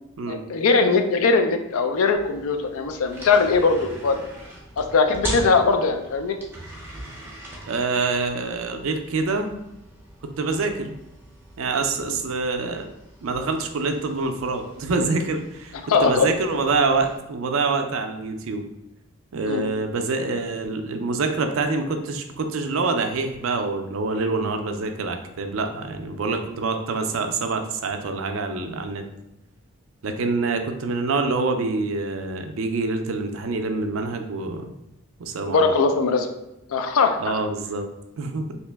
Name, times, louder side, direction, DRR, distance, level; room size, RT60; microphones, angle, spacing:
voice 1, 0.3-4.2 4.8-6.4 15.9-16.3 19.5-19.6 35.5-36.3 36.7-37.3, left 4 dB, 70° left, 7 dB, 0.4 m, -20 dB
sound 1, 2.1-17.2, right 1 dB, 10° right, 0.5 m, -40 dB
voice 2, 7.7-9.5 10.4-10.9 11.6-12.9 13.2-15.7 16.0-18.6 19.3-29.0 30.0-34.7 35.2-35.7 37.2-37.9 38.2-38.6, right 3 dB, 65° right, 6 dB, 0.4 m, -26 dB
3.0 x 2.8 x 3.3 m, 0.89 s
head